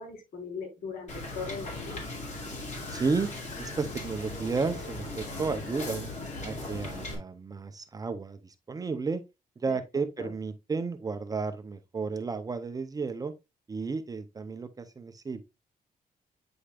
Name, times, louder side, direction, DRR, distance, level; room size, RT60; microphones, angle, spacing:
voice 1, 0.0-2.0 10.2-10.3, left 5 dB, 75° left, 4.2 m, -39 dB
Wind / Boat Water vehicle, 1.1-7.2, left 2 dB, 50° left, 2.5 m, -38 dB
voice 2, 2.9-6.1 6.4-9.2 9.6-13.3 13.7-15.4, right 4 dB, 25° right, 0.6 m, -33 dB
8.7 x 5.0 x 2.4 m
wide cardioid pair, 160°, 15 cm